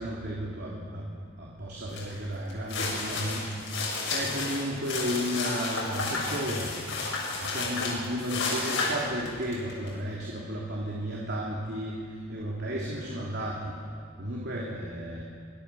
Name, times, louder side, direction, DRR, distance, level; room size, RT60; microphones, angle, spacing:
voice 1, 0.0-6.8 7.4-13.8 14.2-15.2, equal, 55° right, -4 dB, 3.2 m, -33 dB
sound 1, 1.9-2.1 2.5-9.9, left 3 dB, 70° left, 7.5 m, -32 dB
25.5 x 17.5 x 7.1 m, 2.3 s
head